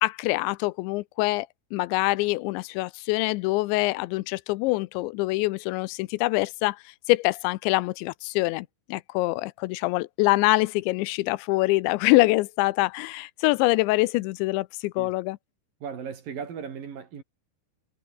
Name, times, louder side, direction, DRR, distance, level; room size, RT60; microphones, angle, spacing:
voice 1, 0.0-6.8 7.1-15.4, left 21 dB, 85° left, 2.9 m, -25 dB
voice 2, 15.8-17.2, right 7 dB, 50° right, 4.5 m, -36 dB
omnidirectional pair, 5.3 m